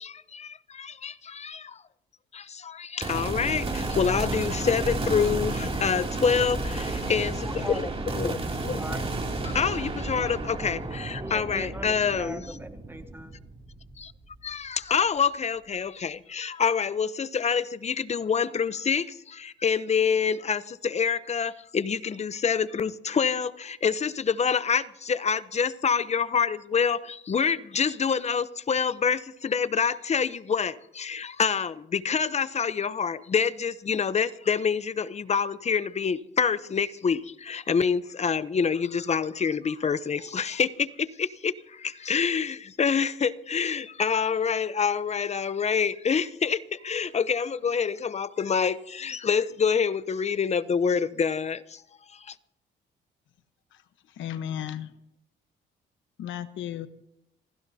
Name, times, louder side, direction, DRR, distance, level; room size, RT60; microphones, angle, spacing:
sound 1, 3.0-14.4, right 2 dB, 30° right, 2.8 m, -32 dB
voice 1, 3.1-3.6 4.0-5.5 5.8-6.6 7.1-7.3 8.1-8.3 9.6-10.4 10.6-10.8 11.3-12.4 14.9-16.1 16.4-17.1 17.3-19.0 19.6-20.6 20.9-22.9 23.2-23.5 23.8-24.1 24.4-24.8 25.2-27.0 27.3-29.2 29.5-30.7 31.1-31.7 32.1-37.2 37.7-40.7 42.1-42.5 42.8-46.6 46.9-48.7 49.0-51.6, left 6 dB, 35° left, 0.7 m, -25 dB
voice 2, 7.4-7.9 8.2-8.4 8.8-9.0 11.2-13.3, right 1 dB, 10° right, 1.1 m, -39 dB
voice 3, 54.2-54.9 56.2-56.9, left 10 dB, 75° left, 1.0 m, -34 dB
28.0 x 15.5 x 2.8 m
cardioid pair, 90°, 20 cm